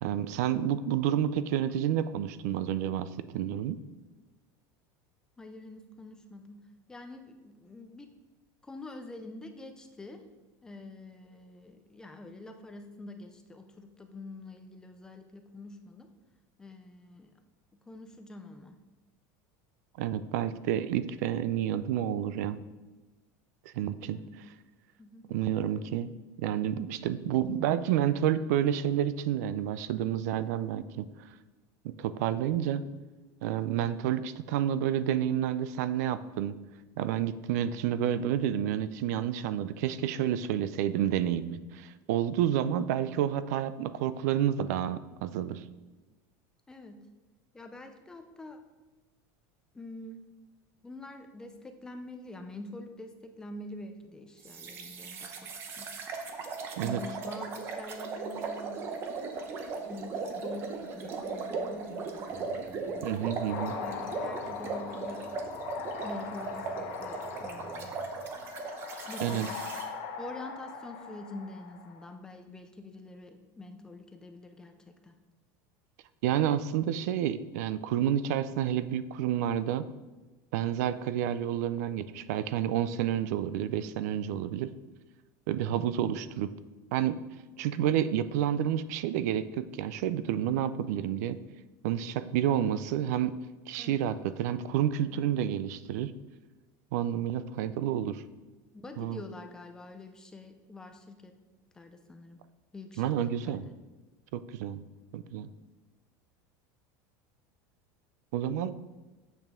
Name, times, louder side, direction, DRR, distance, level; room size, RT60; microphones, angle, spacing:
voice 1, 0.0-3.8 20.0-22.6 23.7-24.2 25.3-26.1 26.4-31.1 31.8-32.8 33.4-36.5 37.0-45.6 56.8-57.0 63.0-63.8 69.2-69.5 76.2-79.9 80.5-84.7 85.5-86.5 86.9-87.2 87.6-91.4 91.8-93.4 93.7-96.1 96.9-98.2 99.0-99.2 103.0-103.6 104.3-104.8 105.1-105.5 108.3-108.7, right 10 dB, 70° right, 14 dB, 0.4 m, -29 dB
voice 2, 5.4-6.6 6.9-8.1 8.6-10.2 10.6-16.1 16.6-17.3 17.9-18.8 24.1-24.3 25.0-25.3 46.7-47.0 47.5-48.6 49.7-50.2 50.8-55.9 56.8-58.8 59.9-62.1 63.8-65.2 66.0-67.9 69.1-69.6 70.2-74.7 75.0-75.1 93.8-94.0 95.0-95.2 98.7-101.3 101.7-102.4 102.7-103.7, left 2 dB, 5° left, 6 dB, 0.4 m, -46 dB
sound 1, 54.4-69.9, right 4 dB, 25° right, 0.7 m, -38 dB
sound 2, 62.3-68.3, equal, 45° right, 2.0 m, -53 dB
sound 3, 63.5-72.1, left 7 dB, 60° left, 0.9 m, -41 dB
8.0 x 6.9 x 3.6 m, 1.2 s
cardioid pair, 180°, 9 cm